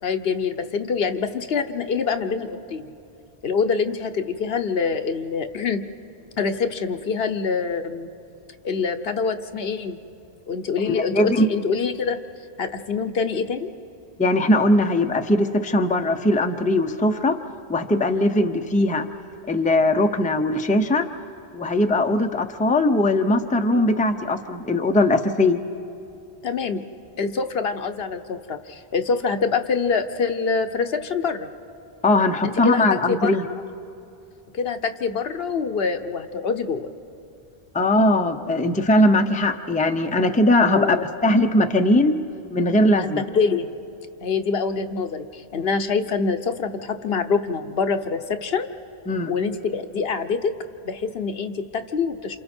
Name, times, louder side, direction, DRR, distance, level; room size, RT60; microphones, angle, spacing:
voice 1, 0.0-2.9 3.4-5.8 6.4-8.1 8.6-10.0 10.5-12.2 12.6-13.7 26.4-26.8 27.2-31.5 32.4-33.5 34.5-36.9 40.7-41.0 43.0-43.7 44.2-48.7 49.3-50.5 50.8-52.4, left 5 dB, 70° left, 8 dB, 1.1 m, -25 dB
voice 2, 10.9-11.5 14.2-17.4 17.7-19.1 19.5-21.1 21.5-25.6 32.0-33.4 37.7-41.0 41.2-42.2 42.5-43.2 49.1-49.3, left 1 dB, 10° left, 6 dB, 0.6 m, -20 dB
28.5 x 27.5 x 4.4 m, 2.7 s
omnidirectional pair, 1.0 m